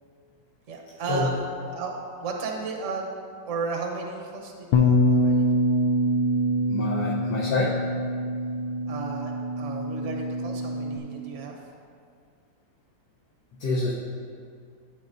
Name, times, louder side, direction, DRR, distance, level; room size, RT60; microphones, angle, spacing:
voice 1, 0.7-1.9 2.2-3.1 3.5-5.5 8.9-11.6, right 4 dB, 45° right, 1 dB, 1.1 m, -34 dB
Bass guitar, 4.7-11.0, equal, 85° left, 1.5 m, -24 dB
voice 2, 6.7-7.8 13.6-13.9, left 3 dB, 60° left, -5 dB, 1.4 m, -27 dB
12.5 x 7.5 x 2.6 m, 2.2 s
omnidirectional pair, 2.2 m